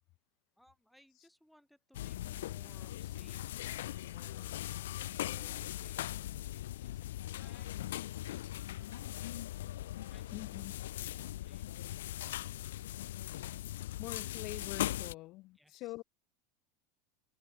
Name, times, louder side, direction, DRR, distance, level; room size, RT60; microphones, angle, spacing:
voice 1, 0.6-9.4 10.1-10.7 11.0-12.9 15.5-15.9, equal, ahead, 5.8 m, -65 dB
sound 1, 1.9-15.1, left 14 dB, 85° left, 0.7 m, -40 dB
voice 2, 10.3-10.7 14.0-16.0, left 19 dB, 45° left, 1.0 m, -44 dB
supercardioid pair, 140°, 0 cm